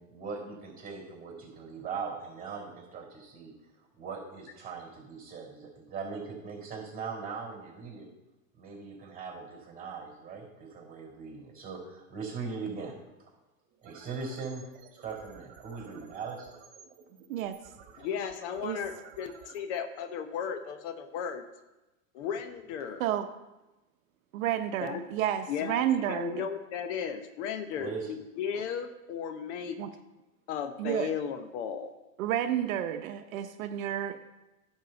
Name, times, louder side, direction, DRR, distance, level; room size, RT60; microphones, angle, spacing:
voice 1, 0.0-3.5 4.0-8.1 8.6-13.0 13.8-14.7 15.0-16.5 27.8-28.1, right 5 dB, 20° right, 1 dB, 4.0 m, -40 dB
sound 1, 13.7-20.8, right 8 dB, 50° right, 1.6 m, -54 dB
voice 2, 18.0-21.4 22.1-23.0 24.8-25.0 25.5-27.9 28.4-29.8 30.5-31.9, left 7 dB, 60° left, 8 dB, 1.0 m, -35 dB
voice 3, 24.3-26.5 29.8-29.9 30.8-31.1 32.2-34.2, right 11 dB, 70° right, 8 dB, 0.8 m, -30 dB
10.5 x 4.6 x 6.9 m, 1.0 s
supercardioid pair, 130°, 41 cm